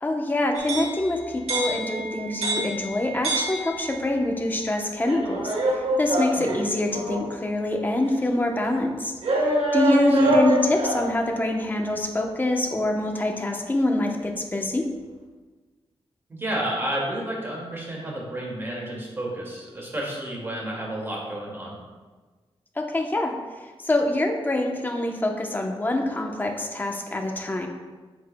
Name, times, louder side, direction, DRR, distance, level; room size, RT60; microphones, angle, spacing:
voice 1, 0.0-5.5 6.0-14.9 22.8-23.3 23.9-27.7, left 1 dB, 20° left, 2 dB, 0.9 m, -25 dB
sound 1, 0.5-4.2 5.0-7.3 8.1-8.2 9.2-11.2, right 1 dB, 80° right, 1.4 m, -26 dB
voice 2, 16.3-21.8, right 1 dB, 25° right, -3 dB, 2.2 m, -31 dB
9.9 x 8.1 x 2.3 m, 1.3 s
wide cardioid pair, 155°, 10 cm